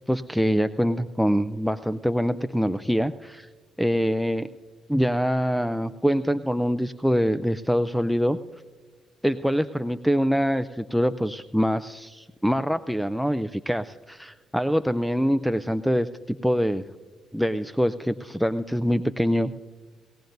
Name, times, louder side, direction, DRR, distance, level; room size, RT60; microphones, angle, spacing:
voice 1, 0.1-3.5 3.8-4.5 4.9-8.4 9.2-16.8 17.3-19.5, equal, ahead, 10 dB, 0.4 m, -24 dB
20.5 x 17.0 x 2.6 m, 1.4 s
cardioid pair, 90°, 0 cm